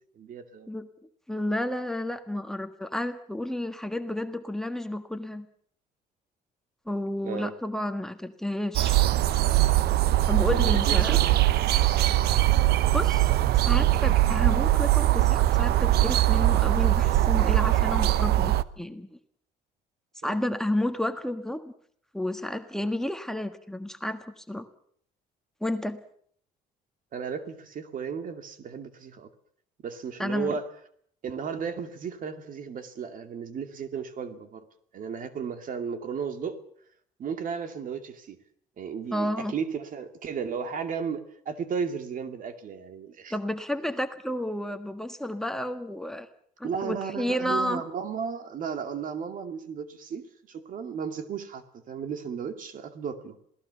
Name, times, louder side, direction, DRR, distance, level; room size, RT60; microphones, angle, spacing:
voice 1, 0.2-0.7 7.2-7.5 10.2-11.4 20.2-20.4 27.1-29.3 29.8-30.7 31.2-34.6 34.9-36.6 37.2-38.4 38.8-43.3 46.6-53.4, right 6 dB, 55° right, 9 dB, 2.5 m, -34 dB
voice 2, 1.3-5.5 6.9-9.0 10.3-11.2 12.9-13.3 13.5-19.2 20.2-21.7 22.1-24.6 25.6-26.0 30.2-30.5 39.1-39.5 43.3-46.3 46.6-47.8, left 1 dB, 5° left, 7 dB, 1.6 m, -31 dB
sound 1, 8.7-18.6, right 15 dB, 75° right, 0.9 m, -22 dB
27.0 x 18.0 x 7.0 m, 0.63 s
cardioid pair, 110°, 17 cm